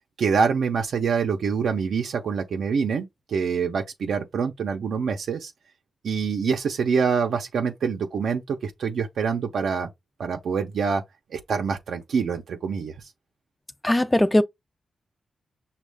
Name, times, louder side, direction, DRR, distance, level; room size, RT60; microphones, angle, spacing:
voice 1, 0.2-5.5 6.0-9.9 10.2-11.0 11.3-12.9, right 6 dB, 75° right, 0.7 m, -25 dB
voice 2, 13.8-14.4, left 1 dB, 10° left, 0.3 m, -19 dB
6.2 x 2.4 x 3.4 m
wide cardioid pair, 160°, 0 cm